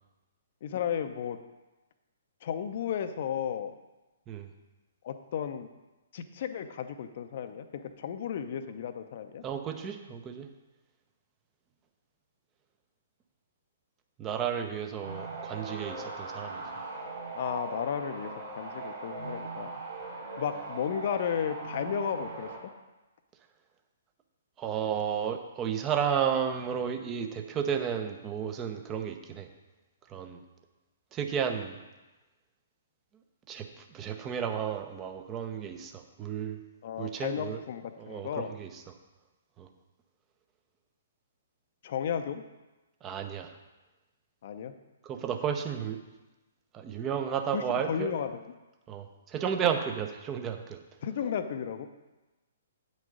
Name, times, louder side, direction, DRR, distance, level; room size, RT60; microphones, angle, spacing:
voice 1, 0.6-1.4 2.4-3.7 5.0-5.7 6.1-9.4 17.3-19.8 20.4-22.5 36.8-38.5 41.8-42.4 44.4-44.7 47.5-48.4 51.0-51.9, left 8 dB, 45° left, 9 dB, 0.7 m, -34 dB
voice 2, 9.4-10.5 14.2-16.6 24.6-29.5 30.1-30.4 31.1-31.8 33.5-36.6 37.0-37.6 38.0-38.7 39.6-39.7 43.0-43.5 45.0-46.0 46.7-48.1 48.9-50.8, right 8 dB, 20° right, 6 dB, 0.9 m, -32 dB
sound 1, 15.0-22.6, right 3 dB, 60° right, 2.7 m, -40 dB
9.2 x 6.3 x 5.1 m, 1.1 s
figure-of-eight pair, 120°, 0 cm